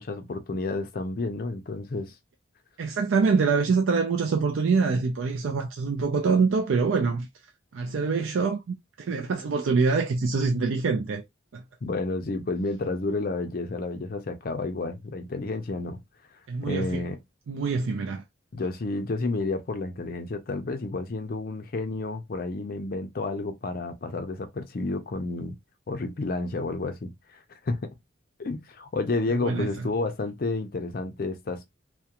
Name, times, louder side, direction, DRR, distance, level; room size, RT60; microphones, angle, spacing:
voice 1, 0.0-2.1 11.8-16.0 16.6-17.2 18.5-25.6 25.9-27.9 28.4-31.6, left 3 dB, 45° left, 0.4 m, -30 dB
voice 2, 2.8-7.3 7.7-11.2 11.5-11.6 16.5-17.0 17.5-18.2 29.3-29.9, right 4 dB, 80° right, 0.4 m, -25 dB
2.3 x 2.2 x 2.8 m
head